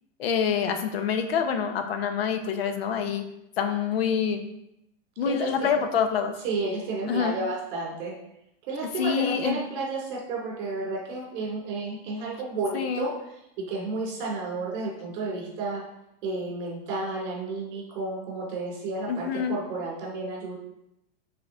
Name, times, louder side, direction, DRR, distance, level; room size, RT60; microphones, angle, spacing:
voice 1, 0.2-3.2 3.6-4.4 5.2-6.3 7.1-7.4 9.0-9.6 12.7-13.1 19.1-19.6, left 7 dB, 70° left, 6 dB, 1.0 m, -26 dB
voice 2, 5.2-5.7 6.4-8.1 8.7-13.1 13.6-15.8 16.2-20.6, right 3 dB, 45° right, -2 dB, 2.6 m, -32 dB
9.0 x 4.1 x 3.7 m, 0.83 s
supercardioid pair, 175°, 31 cm